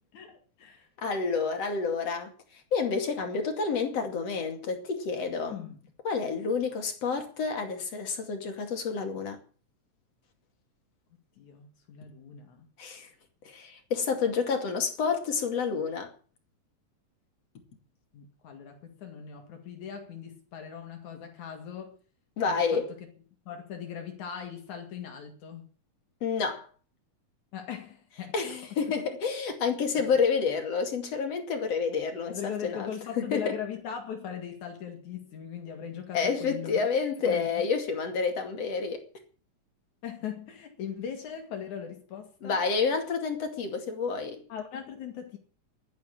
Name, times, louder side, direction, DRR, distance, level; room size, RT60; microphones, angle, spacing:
voice 1, 0.1-0.9 5.5-5.8 11.4-12.7 18.1-22.0 22.5-23.0 23.5-25.7 27.5-28.3 32.3-36.9 37.2-37.6 40.0-42.6 44.5-45.4, left 8 dB, 75° left, 3.3 m, -39 dB
voice 2, 1.0-2.3 2.7-5.6 6.1-9.4 12.8-13.1 13.5-16.1 22.4-22.9 26.2-26.7 28.3-32.9 33.2-33.6 36.1-39.0 42.4-44.4, left 5 dB, 55° left, 3.5 m, -29 dB
11.5 x 10.5 x 8.7 m
omnidirectional pair, 3.4 m